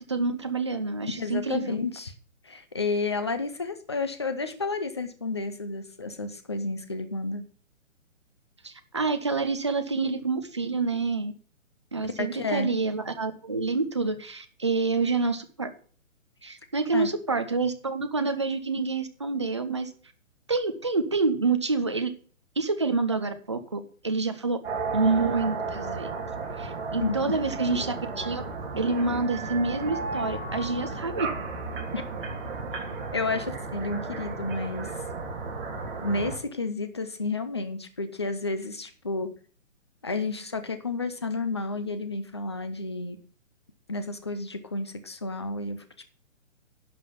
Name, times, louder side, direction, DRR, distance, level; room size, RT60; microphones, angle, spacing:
voice 1, 0.1-1.8 8.6-11.3 11.9-15.7 16.4-19.9 20.5-22.1 22.6-24.6 24.9-26.1 26.6-28.4 28.7-31.3, right 3 dB, 20° right, 8 dB, 0.5 m, -27 dB
voice 2, 1.2-2.1 2.4-7.4 12.2-12.7 16.9-17.1 27.0-27.2 31.9-32.0 33.1-34.9 36.0-39.3 40.0-43.2 43.9-45.8, left 3 dB, 20° left, 9 dB, 0.6 m, -31 dB
sound 1, 24.6-36.4, right 4 dB, 40° right, 3.3 m, -34 dB
11.0 x 5.6 x 5.8 m, 0.43 s
hypercardioid pair, 170°, 40 cm